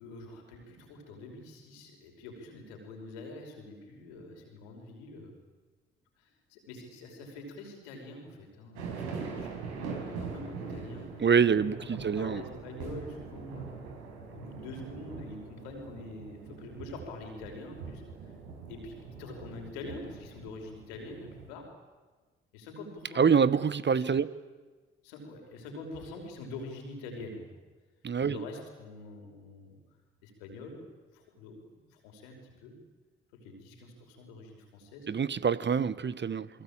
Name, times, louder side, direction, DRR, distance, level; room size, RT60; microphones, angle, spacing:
voice 1, 0.0-5.3 6.2-11.3 11.8-13.7 14.3-18.0 18.7-21.7 22.5-23.5 23.9-24.2 25.0-27.5 28.3-29.8 30.2-30.8 31.1-32.7 33.4-35.1, left 2 dB, 80° left, 5.4 m, -45 dB
sound 1, 8.8-21.5, right 5 dB, 80° right, 4.9 m, -42 dB
voice 2, 11.2-12.4 23.2-24.3 28.0-28.4 35.1-36.5, right 6 dB, 35° right, 1.2 m, -25 dB
28.5 x 22.5 x 8.9 m
hypercardioid pair, 45°, 30 cm